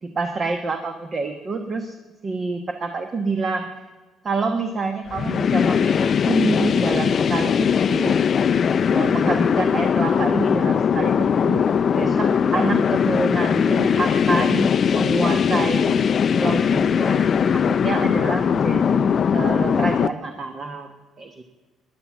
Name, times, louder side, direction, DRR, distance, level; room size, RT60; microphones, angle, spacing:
voice 1, 0.0-2.0 2.2-3.7 4.2-8.2 8.9-11.7 11.9-16.1 16.3-20.9 21.2-21.3, right 3 dB, 30° right, 6 dB, 1.1 m, -27 dB
sound 1, 5.1-20.1, left 7 dB, 40° left, 0.4 m, -20 dB
15.0 x 10.5 x 7.2 m, 1.3 s
cardioid pair, 135°, 0 cm